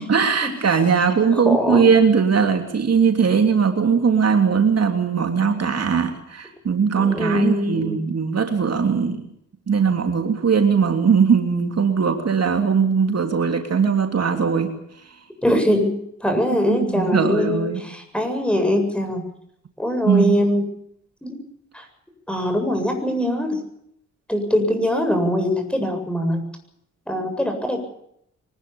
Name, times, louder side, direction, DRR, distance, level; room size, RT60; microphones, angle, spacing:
voice 1, 0.0-9.2 9.7-14.7 16.7-17.8 20.0-20.4, right 6 dB, 55° right, 5 dB, 3.1 m, -19 dB
voice 2, 1.4-1.9 7.0-8.0 15.4-19.3 19.8-20.7 21.2-21.4 21.7-21.9 22.3-23.6 24.3-26.4 27.1-27.8, equal, 5° left, 5 dB, 7.7 m, -22 dB
24.5 x 20.5 x 7.2 m, 0.74 s
wide cardioid pair, 100°, 29 cm